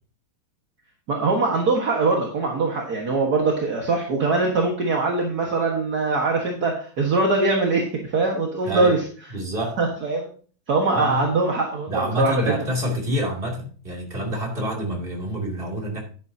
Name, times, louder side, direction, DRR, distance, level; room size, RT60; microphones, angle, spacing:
voice 1, 1.1-9.0 9.8-10.3 10.7-12.5, right 3 dB, 55° right, 0 dB, 2.0 m, -22 dB
voice 2, 8.7-9.0 9.3-9.7 10.9-11.3 11.9-16.0, equal, 30° right, -1 dB, 3.0 m, -27 dB
10.5 x 10.5 x 2.8 m, 0.41 s
omnidirectional pair, 2.1 m